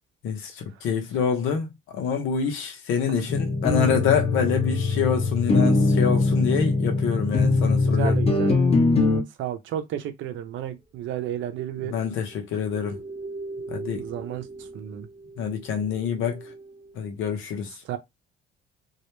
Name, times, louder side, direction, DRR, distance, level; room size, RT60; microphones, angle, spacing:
voice 1, 0.2-1.7 1.9-8.1 11.9-13.0 13.7-14.0 15.4-16.4 17.0-17.7, left 7 dB, 75° left, 0.8 m, -26 dB
sound 1, 3.3-9.2, left 3 dB, 30° left, 0.8 m, -21 dB
voice 2, 7.8-8.6 9.4-11.9 13.9-14.5 14.7-15.1 17.9-18.0, right 11 dB, 70° right, 0.6 m, -32 dB
sound 2, 11.7-17.3, right 3 dB, 25° right, 0.7 m, -40 dB
2.4 x 2.1 x 3.0 m
supercardioid pair, 80°, 21 cm